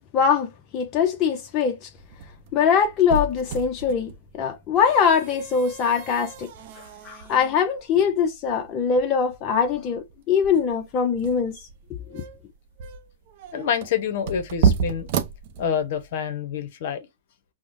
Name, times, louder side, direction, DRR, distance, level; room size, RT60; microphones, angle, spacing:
voice 1, 0.1-1.9 2.5-6.5 7.0-11.5 12.1-12.2, left 6 dB, 35° left, 0.6 m, -22 dB
sound 1, 2.0-16.1, right 6 dB, 55° right, 0.5 m, -31 dB
voice 2, 13.5-15.1 15.6-17.1, left 8 dB, 60° left, 0.8 m, -27 dB
4.7 x 2.1 x 2.5 m
hypercardioid pair, 130°, 0 cm